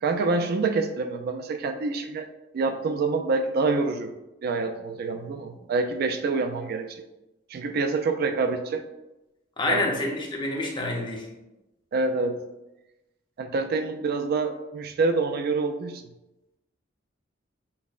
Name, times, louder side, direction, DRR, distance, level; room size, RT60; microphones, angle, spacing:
voice 1, 0.0-2.3 2.5-4.1 4.4-7.0 7.5-8.8 9.7-9.9 11.9-12.4 13.4-16.0, right 3 dB, 55° right, 7 dB, 0.3 m, -26 dB
voice 2, 9.6-11.3, left 2 dB, 25° left, -1 dB, 0.6 m, -27 dB
5.4 x 2.1 x 2.4 m, 0.98 s
head